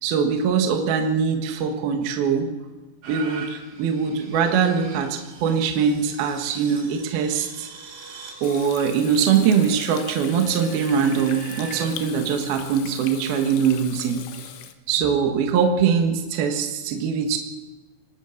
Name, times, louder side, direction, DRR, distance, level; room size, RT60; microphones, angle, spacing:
voice 1, 0.0-2.5 3.1-7.7 8.4-14.2 14.9-17.4, right 6 dB, 60° right, 4 dB, 3.0 m, -22 dB
sound 1, 3.0-11.8 12.5-12.6, right 5 dB, 80° right, 6.8 m, -42 dB
Water tap faucet / Sink (filling or washing), 8.4-14.7, left 10 dB, 90° left, 3.9 m, -40 dB
25.5 x 19.5 x 6.6 m, 1.2 s
omnidirectional pair, 5.6 m